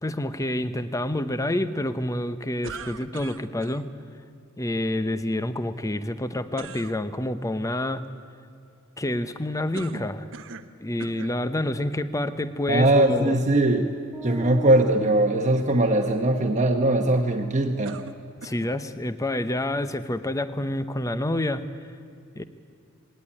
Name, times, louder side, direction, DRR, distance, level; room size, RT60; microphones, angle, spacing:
voice 1, 0.0-3.9 4.6-8.0 9.0-10.3 10.8-13.4 18.4-21.6 22.3-22.4, left 1 dB, 15° left, 12 dB, 0.8 m, -28 dB
sound 1, 2.6-3.8 6.5-7.0 9.7-10.7 11.0-11.4 12.2-12.3 17.8-18.8, right 4 dB, 60° right, 0.9 m, -40 dB
voice 2, 12.7-13.9 14.2-18.0, right 1 dB, 35° right, 3 dB, 1.1 m, -21 dB
sound 2, 14.1-16.3, right 2 dB, 10° right, 2.7 m, -39 dB
20.0 x 17.5 x 9.8 m, 2.4 s
head